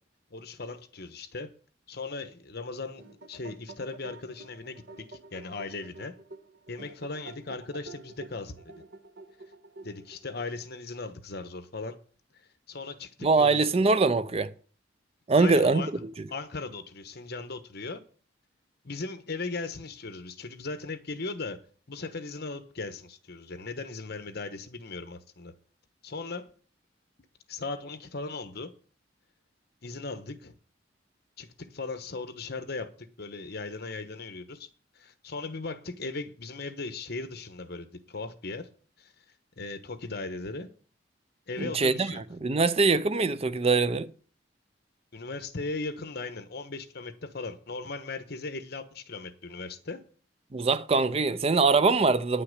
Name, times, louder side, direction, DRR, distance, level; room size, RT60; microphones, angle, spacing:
voice 1, 0.3-1.5 1.9-6.1 6.7-8.7 9.8-12.0 12.7-13.7 15.4-15.9 16.3-18.0 18.8-21.6 21.9-25.5 26.0-26.5 27.5-28.7 29.8-30.5 31.4-34.7 35.0-38.7 39.0-39.1 39.6-40.7 41.5-42.2 45.1-50.0, left 3 dB, 60° left, 1.1 m, -38 dB
sound 1, 2.7-10.4, right 2 dB, 60° right, 1.3 m, -49 dB
voice 2, 13.2-14.5 15.3-15.8 41.6-42.1 42.4-44.1 50.5-52.4, right 3 dB, 35° right, 0.5 m, -23 dB
9.8 x 5.7 x 8.1 m
head